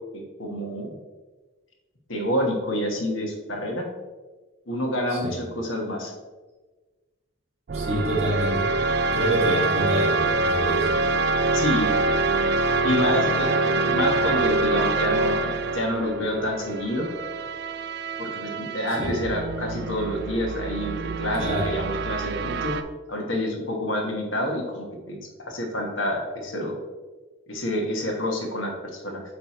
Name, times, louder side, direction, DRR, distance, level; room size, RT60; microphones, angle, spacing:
voice 1, 0.1-0.9 2.1-3.9 4.7-6.1 11.5-11.9 12.8-17.1 18.2-22.8 23.1-26.8 27.5-29.2, left 1 dB, 65° left, 1 dB, 1.3 m, -28 dB
voice 2, 7.7-8.7 9.1-10.9 19.0-19.2 21.3-21.7, equal, 30° right, -4 dB, 1.8 m, -27 dB
sound 1, 7.7-22.8, right 3 dB, 50° right, 0.4 m, -25 dB
8.6 x 3.4 x 4.3 m, 1.3 s
head